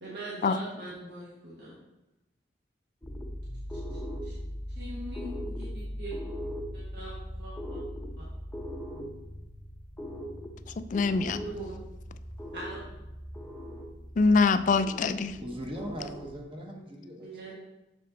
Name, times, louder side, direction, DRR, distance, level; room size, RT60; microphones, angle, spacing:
voice 1, 0.0-1.8 3.7-4.3 4.7-6.2 6.7-7.8 8.2-8.3 11.4-11.7 12.5-12.8 17.2-17.5, right 1 dB, 65° right, -7 dB, 1.6 m, -42 dB
sound 1, 3.0-16.4, equal, 10° left, 0.7 m, -39 dB
voice 2, 10.8-11.4 14.2-15.4, left 4 dB, 45° left, 12 dB, 0.3 m, -24 dB
voice 3, 15.4-17.5, equal, 30° right, 1 dB, 1.0 m, -40 dB
6.7 x 5.3 x 3.9 m, 0.95 s
head